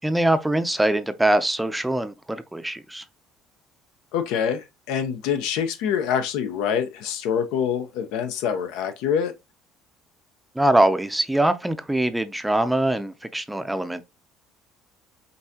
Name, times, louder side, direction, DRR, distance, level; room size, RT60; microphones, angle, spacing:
voice 1, 0.0-3.0 10.5-14.0, right 1 dB, 5° right, 0.5 m, -23 dB
voice 2, 4.1-9.3, left 8 dB, 80° left, 0.7 m, -25 dB
5.5 x 2.7 x 2.8 m
supercardioid pair, 100°, 0 cm